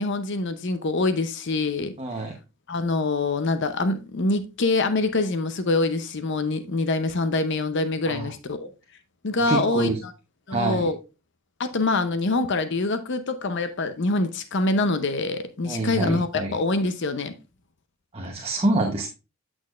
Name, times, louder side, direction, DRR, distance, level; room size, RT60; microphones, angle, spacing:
voice 1, 0.0-1.9 2.7-8.7 9.2-9.9 10.5-11.0 11.6-17.4, left 3 dB, 60° left, 0.7 m, -25 dB
voice 2, 2.0-2.3 8.1-8.3 9.5-10.0 10.5-10.9 15.6-16.5 18.1-19.1, right 2 dB, 30° right, 1.0 m, -26 dB
8.5 x 6.1 x 2.4 m
head